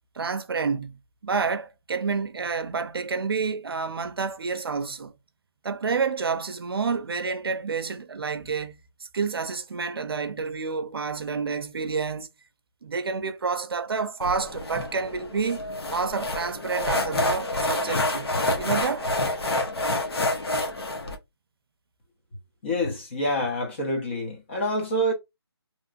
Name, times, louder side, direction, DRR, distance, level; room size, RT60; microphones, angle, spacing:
voice 1, 0.2-5.1 5.6-8.8 9.1-12.3 12.8-15.6 15.9-19.1, right 5 dB, 60° right, 0.6 m, -29 dB
sound 1, 14.2-21.2, left 2 dB, 65° left, 1.1 m, -28 dB
voice 2, 22.6-25.1, equal, 25° left, 0.8 m, -27 dB
3.0 x 2.7 x 2.5 m
figure-of-eight pair, 165°, 14 cm